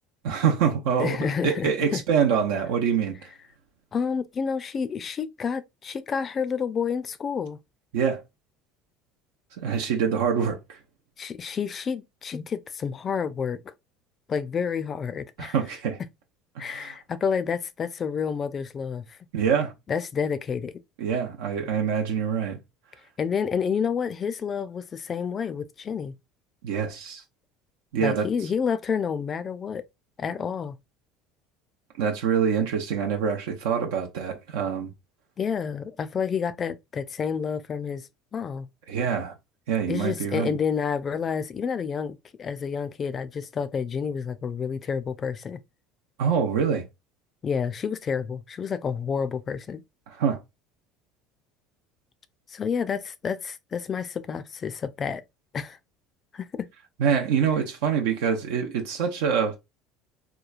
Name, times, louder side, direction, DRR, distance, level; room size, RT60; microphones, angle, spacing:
voice 1, 0.2-3.2 7.9-8.2 9.6-10.8 15.4-16.0 16.6-17.0 19.3-19.7 21.0-22.6 26.6-27.2 27.9-28.3 32.0-34.9 38.9-39.3 39.7-40.6 46.2-46.8 50.1-50.4 57.0-59.6, right 7 dB, 80° right, 0.5 m, -25 dB
voice 2, 1.0-2.0 3.9-7.6 11.2-13.7 14.3-15.6 16.6-19.2 19.9-20.8 23.2-26.1 28.0-29.8 30.2-30.8 35.4-38.7 39.9-45.6 47.4-49.8 52.5-55.2 55.5-55.8 56.3-56.7, left 6 dB, 35° left, 0.3 m, -29 dB
3.0 x 2.2 x 2.3 m
hypercardioid pair, 85°, 0 cm